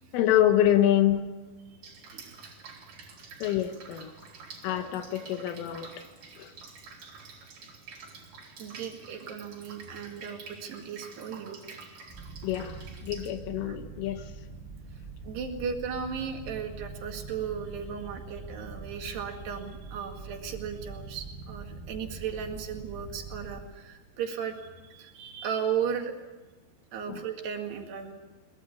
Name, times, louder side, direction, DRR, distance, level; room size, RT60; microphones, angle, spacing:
voice 1, 0.1-1.2 3.4-4.1 4.6-6.0 6.4-6.5 12.4-14.3 27.1-27.2, left 11 dB, 80° left, 8 dB, 3.6 m, -26 dB
Drip, 1.8-13.3, right 5 dB, 45° right, 4.3 m, -48 dB
voice 2, 8.6-11.8 13.7-13.8 15.2-26.1 26.9-28.1, right 7 dB, 60° right, 4 dB, 3.8 m, -36 dB
sound 1, 12.1-23.6, right 4 dB, 15° right, 5.0 m, -43 dB
22.5 x 20.0 x 8.3 m, 1.3 s
omnidirectional pair, 5.8 m